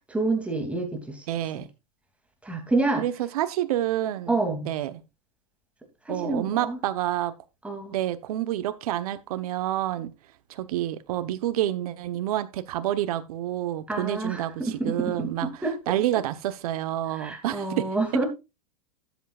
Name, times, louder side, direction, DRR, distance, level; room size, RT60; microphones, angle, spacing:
voice 1, 0.1-1.2 1.5-1.6 2.4-3.0 4.3-4.7 6.1-6.8 7.6-8.0 13.9-15.9 17.1-18.3, right 2 dB, 5° right, 2.8 m, -28 dB
voice 2, 1.3-1.7 3.0-4.3 4.7-5.0 6.1-7.3 7.9-10.1 10.5-15.5 15.9-17.9, right 13 dB, 65° right, 1.2 m, -28 dB
13.0 x 8.3 x 2.5 m
supercardioid pair, 135°, 20 cm